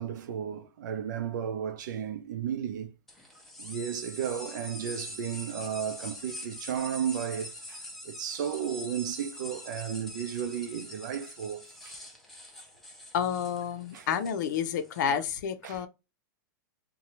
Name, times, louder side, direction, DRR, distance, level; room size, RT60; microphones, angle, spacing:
voice 1, 0.0-2.9 3.6-12.0 13.9-14.1 15.1-15.2 15.6-15.9, right 8 dB, 65° right, 0.6 m, -34 dB
sound 1, 3.1-15.0, left 1 dB, 5° left, 0.5 m, -44 dB
voice 2, 13.1-15.9, left 8 dB, 60° left, 0.5 m, -30 dB
2.7 x 2.2 x 3.0 m
supercardioid pair, 160°, 11 cm